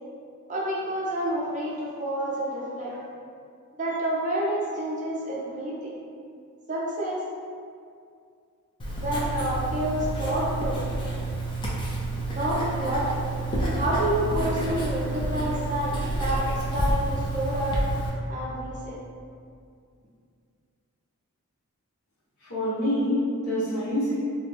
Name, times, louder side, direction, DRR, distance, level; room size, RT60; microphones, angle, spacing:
voice 1, 0.5-3.0 3.8-6.0 6.7-7.2 9.0-10.9 12.3-13.2 13.8-17.8 18.3-19.0, right 1 dB, 35° right, -5 dB, 0.5 m, -29 dB
Writing, 8.8-18.1, right 2 dB, 20° left, 0.4 m, -29 dB
voice 2, 22.4-24.2, left 1 dB, 80° left, -11 dB, 1.2 m, -26 dB
2.5 x 2.1 x 3.3 m, 2.3 s
head